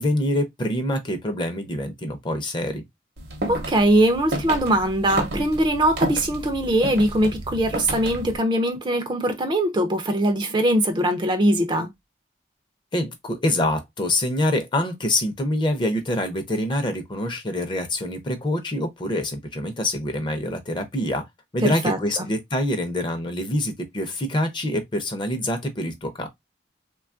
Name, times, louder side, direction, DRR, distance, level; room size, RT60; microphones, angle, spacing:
voice 1, 0.0-2.8 12.9-21.2 21.5-26.3, left 1 dB, 25° left, 0.5 m, -25 dB
sound 1, 3.2-8.4, right 2 dB, 60° right, 0.7 m, -31 dB
voice 2, 3.5-11.9 21.6-22.3, right 1 dB, 25° right, 0.4 m, -21 dB
3.1 x 2.3 x 2.4 m
head